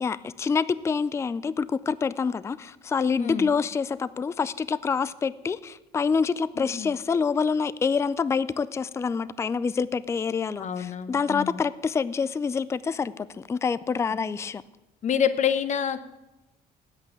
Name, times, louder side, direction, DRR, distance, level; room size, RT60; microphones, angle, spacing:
voice 1, 0.0-14.6, left 5 dB, 15° left, 0.3 m, -27 dB
voice 2, 3.2-3.5 6.6-7.0 10.6-11.6 14.1-14.2 15.0-16.0, left 8 dB, 45° left, 0.8 m, -27 dB
8.8 x 8.1 x 8.3 m
cardioid pair, 110°, 17 cm